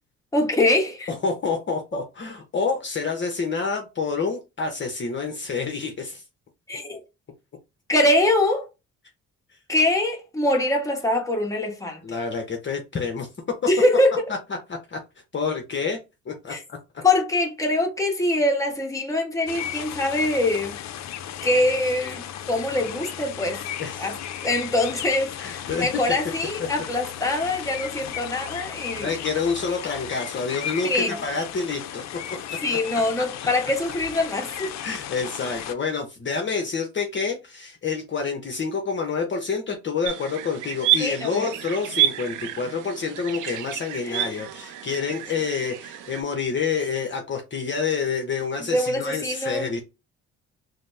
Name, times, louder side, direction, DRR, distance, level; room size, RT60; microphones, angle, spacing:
voice 1, 0.3-1.1 1.9-2.0 6.7-7.0 7.9-8.7 9.7-12.0 13.7-14.2 16.5-16.6 17.0-20.8 21.4-23.6 24.0-24.2 24.4-29.1 30.8-31.2 32.6-34.7 41.0-41.5 44.0-44.4 48.7-49.7, left 1 dB, 10° left, 1.2 m, -23 dB
voice 2, 1.1-6.2 12.0-13.3 14.7-15.0 15.3-16.0 16.3-16.8 23.8-24.1 25.4-25.9 26.6-26.7 29.0-32.0 32.3-32.4 34.8-49.8, left 5 dB, 40° left, 0.8 m, -28 dB
sound 1, 19.5-35.7, left 10 dB, 65° left, 0.5 m, -35 dB
sound 2, 40.1-46.2, right 12 dB, 90° right, 0.5 m, -29 dB
4.0 x 2.0 x 3.2 m
cardioid pair, 90°, 30 cm